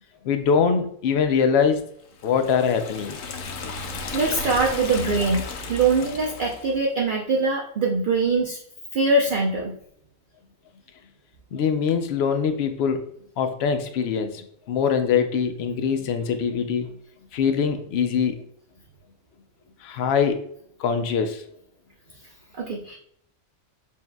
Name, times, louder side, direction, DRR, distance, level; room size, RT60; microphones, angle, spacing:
voice 1, 0.2-1.8 2.2-3.2 11.5-13.0 13.4-14.4 14.7-16.9 17.3-18.4 19.8-20.4 20.8-21.4, left 6 dB, 65° left, 8 dB, 0.7 m, -23 dB
Liquid, 2.2-6.8, left 4 dB, 80° left, 1.0 m, -34 dB
voice 2, 4.1-8.6 8.9-9.8 22.5-23.0, right 3 dB, 55° right, -2 dB, 0.6 m, -23 dB
7.1 x 2.7 x 2.2 m, 0.67 s
omnidirectional pair, 1.4 m